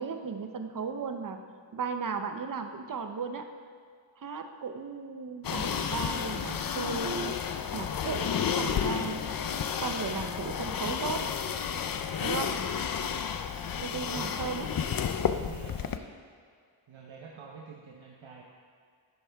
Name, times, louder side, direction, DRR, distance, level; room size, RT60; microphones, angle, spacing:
voice 1, 0.0-1.4 1.7-3.5 4.2-7.4 7.7-9.2 9.8-11.2 12.2-12.5 13.8-14.7, right 5 dB, 45° right, 7 dB, 0.7 m, -35 dB
sound 1, 5.4-16.0, left 7 dB, 50° left, 0.5 m, -31 dB
voice 2, 15.4-16.2 16.9-18.4, right 5 dB, 80° right, -1 dB, 1.0 m, -47 dB
11.0 x 8.3 x 3.4 m, 2.1 s
wide cardioid pair, 130°, 47 cm